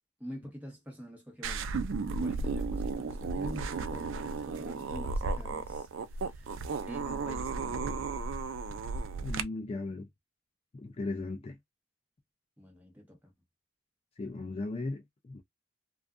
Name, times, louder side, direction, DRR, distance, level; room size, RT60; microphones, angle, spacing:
voice 1, 0.2-1.7 2.1-6.6 6.9-7.9 12.6-13.3, equal, 10° right, 1.1 m, -46 dB
sound 1, 1.4-9.4, right 4 dB, 80° right, 0.4 m, -34 dB
voice 2, 9.2-10.1 10.7-11.6 14.2-15.4, left 2 dB, 30° left, 0.4 m, -37 dB
2.5 x 2.3 x 2.3 m
head